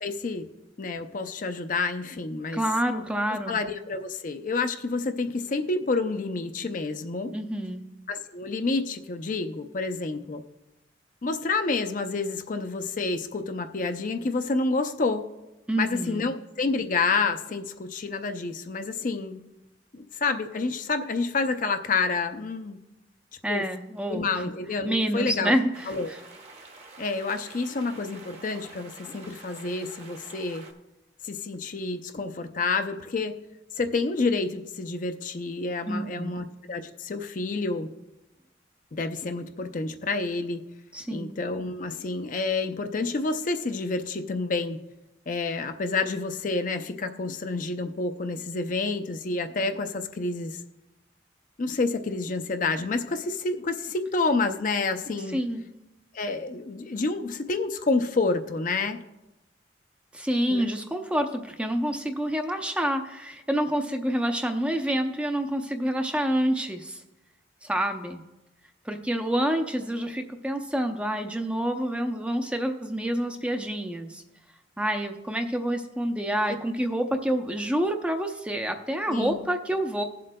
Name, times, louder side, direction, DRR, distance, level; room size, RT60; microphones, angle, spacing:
voice 1, 0.0-0.5 0.8-2.6 3.5-7.3 8.1-10.4 11.2-15.2 15.8-19.4 19.9-22.8 23.5-23.6 24.1-25.5 25.9-26.1 27.0-30.6 31.2-33.3 33.8-37.9 38.9-40.6 41.1-44.8 45.3-50.6 51.6-55.4 56.1-59.0 60.5-60.6 79.1-79.5, left 3 dB, 45° left, 8 dB, 0.5 m, -29 dB
voice 2, 2.5-3.6 7.3-7.8 15.7-16.3 23.4-24.4 24.8-26.2 35.9-36.4 40.9-41.3 55.3-55.6 60.1-67.0 67.6-68.2 68.8-74.2 74.8-80.0, right 1 dB, 5° right, 5 dB, 0.5 m, -28 dB
sound 1, 25.7-30.7, right 3 dB, 35° right, 1.0 m, -48 dB
19.5 x 7.5 x 2.2 m, 0.99 s
head